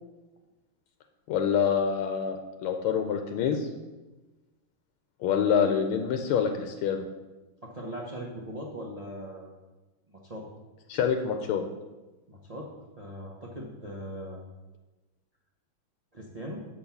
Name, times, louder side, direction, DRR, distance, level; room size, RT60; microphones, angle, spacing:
voice 1, 1.3-3.7 5.2-7.0 10.9-11.6, left 7 dB, 80° left, 5 dB, 1.5 m, -26 dB
voice 2, 7.6-9.5 10.1-10.5 12.3-14.5 16.1-16.7, equal, 70° right, -2 dB, 0.3 m, -40 dB
6.4 x 5.2 x 7.0 m, 1.1 s
omnidirectional pair, 2.4 m